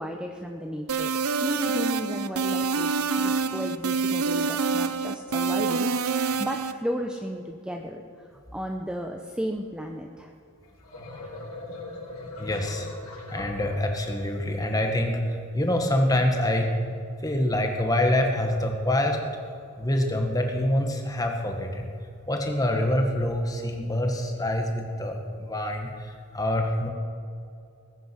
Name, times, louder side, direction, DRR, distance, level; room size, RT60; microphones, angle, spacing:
voice 1, 0.0-10.3, equal, 5° right, 2 dB, 0.7 m, -34 dB
sound 1, 0.9-6.7, right 5 dB, 80° right, 0.7 m, -26 dB
sound 2, 10.6-14.5, left 2 dB, 75° left, 4.3 m, -40 dB
voice 2, 12.4-12.9 13.3-15.2 15.5-16.7 17.2-19.2 19.8-21.9 22.3-25.9 26.3-26.9, left 1 dB, 15° left, 3 dB, 1.6 m, -25 dB
20.5 x 9.2 x 6.2 m, 2.5 s
head